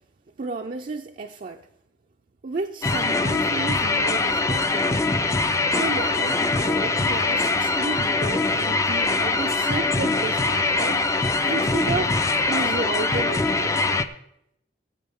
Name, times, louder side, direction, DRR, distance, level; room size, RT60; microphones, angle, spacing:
voice 1, 0.4-1.7 2.4-5.1 5.7-12.2 12.5-14.1, right 3 dB, 45° right, 0.5 m, -32 dB
sound 1, 2.8-14.0, left 3 dB, 15° left, 0.4 m, -23 dB
16.0 x 8.3 x 3.6 m
head